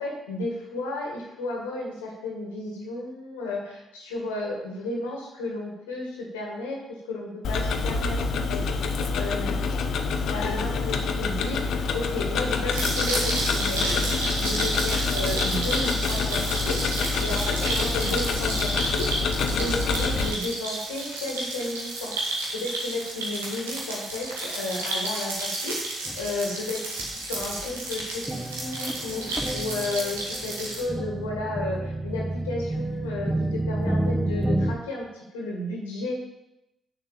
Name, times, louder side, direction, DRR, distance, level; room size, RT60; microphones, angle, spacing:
voice 1, 0.0-9.6 10.3-14.1 14.4-22.1 22.5-25.8 26.2-36.2, left 2 dB, 85° left, -1 dB, 2.0 m, -33 dB
Tick-tock, 7.4-20.3, left 4 dB, 65° left, 0.8 m, -27 dB
sound 1, 12.7-30.8, right 2 dB, 85° right, 1.9 m, -31 dB
sound 2, 26.1-26.4 27.0-27.1 27.4-34.8, right 1 dB, 10° right, 1.0 m, -30 dB
6.7 x 6.7 x 7.4 m, 0.87 s
hypercardioid pair, 40°, 0 cm